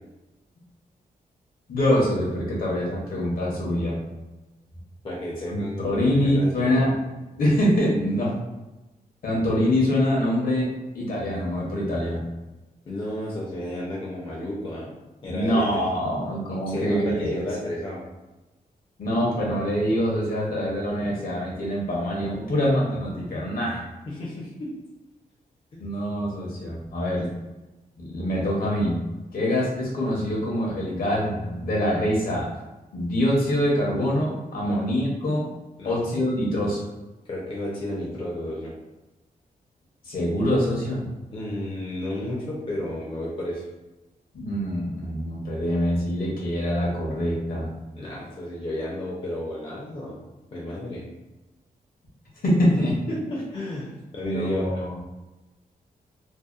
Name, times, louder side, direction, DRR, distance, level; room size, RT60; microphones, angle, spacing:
voice 1, 1.7-4.0 5.5-7.0 7.4-8.4 9.2-10.7 10.9-12.3 15.2-17.4 19.0-23.9 25.8-27.3 28.0-29.0 29.3-32.5 32.9-35.5 35.8-36.8 40.0-41.1 44.3-47.7 52.4-52.9 54.2-54.9, equal, 65° left, -4 dB, 0.8 m, -24 dB
voice 2, 5.0-6.9 12.9-14.9 15.2-16.0 16.7-18.0 24.1-24.7 25.7-25.9 27.2-27.3 34.6-34.8 35.8-36.0 37.3-38.7 41.3-43.6 47.9-50.2 50.5-51.0 52.7-52.8 53.1-54.8, left 1 dB, 35° left, -4 dB, 0.5 m, -32 dB
2.7 x 2.1 x 2.3 m, 1.1 s
wide cardioid pair, 145°, 16 cm